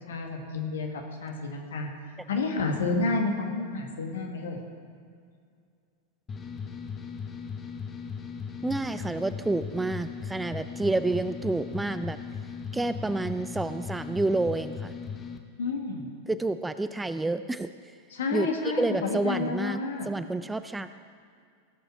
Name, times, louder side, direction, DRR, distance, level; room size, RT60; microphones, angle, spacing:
voice 1, 0.1-1.9 2.3-4.6 15.6-16.1 18.1-20.1, left 3 dB, 65° left, 2 dB, 1.6 m, -30 dB
sound 1, 6.3-15.4, left 6 dB, 20° left, 0.9 m, -38 dB
voice 2, 8.6-12.2 12.7-14.9 16.3-17.7 18.3-18.5 18.8-20.9, right 2 dB, 10° right, 12 dB, 0.3 m, -29 dB
17.0 x 6.9 x 4.8 m, 2.3 s
figure-of-eight pair, 90°, 0 cm